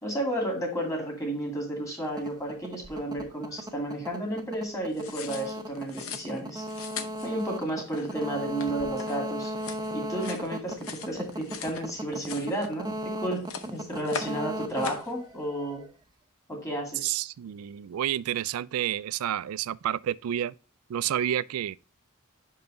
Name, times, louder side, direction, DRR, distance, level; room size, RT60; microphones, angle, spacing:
voice 1, 0.0-6.6 7.2-9.5 9.9-15.9 16.5-17.1, right 1 dB, 15° left, 2.4 m, -32 dB
sound 1, 2.0-15.9, equal, 20° right, 0.7 m, -37 dB
sound 2, 4.9-11.8 12.1-13.0 13.3-14.4 14.7-15.1, left 6 dB, 70° left, 0.8 m, -41 dB
voice 2, 17.0-20.5 20.9-21.8, right 11 dB, 80° right, 0.3 m, -30 dB
5.8 x 5.4 x 3.8 m
head